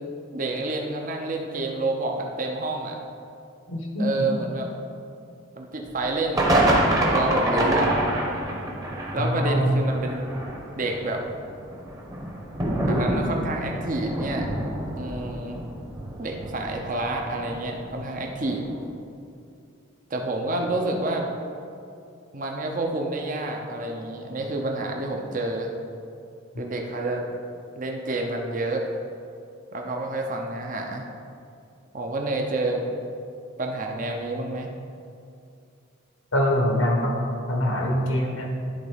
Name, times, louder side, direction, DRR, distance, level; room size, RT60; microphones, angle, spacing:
voice 1, 0.3-3.0 4.0-4.7 5.6-7.9 9.1-10.4 10.8-11.2 12.9-14.5 14.9-15.6 16.2-18.6 20.1-21.3 22.3-25.7 26.6-27.3 27.7-28.8 29.7-31.0 31.9-32.9 33.6-34.7, right 2 dB, 40° right, 1 dB, 0.7 m, -28 dB
voice 2, 3.7-4.3 9.2-9.7 36.3-37.1 37.5-38.5, equal, 85° left, 0 dB, 1.3 m, -24 dB
sound 1, 6.0-6.1 6.3-17.8 18.1-18.2 18.6-18.7, right 1 dB, 20° right, 1.0 m, -26 dB
11.0 x 4.0 x 5.0 m, 2.5 s
head